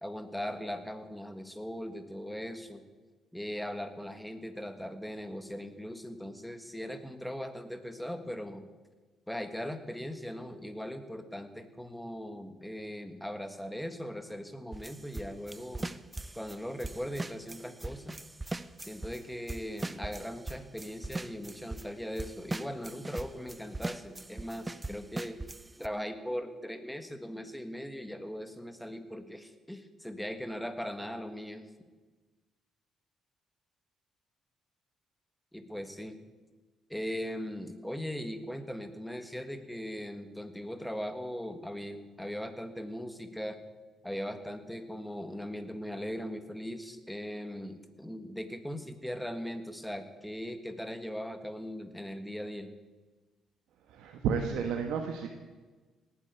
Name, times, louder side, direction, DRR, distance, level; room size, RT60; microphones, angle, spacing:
voice 1, 0.0-2.8 3.3-8.6 9.3-15.9 16.3-18.2 18.9-25.4 25.8-31.6 35.5-36.2 36.9-43.6 44.0-52.7, equal, 5° left, 9 dB, 1.7 m, -39 dB
sound 1, 14.7-19.2 19.5-21.9 22.2-25.9, right 2 dB, 20° right, 0.7 m, -40 dB
voice 2, 53.8-55.3, right 6 dB, 85° right, 4 dB, 1.3 m, -32 dB
18.0 x 9.3 x 8.2 m, 1.3 s
cardioid pair, 90°, 0 cm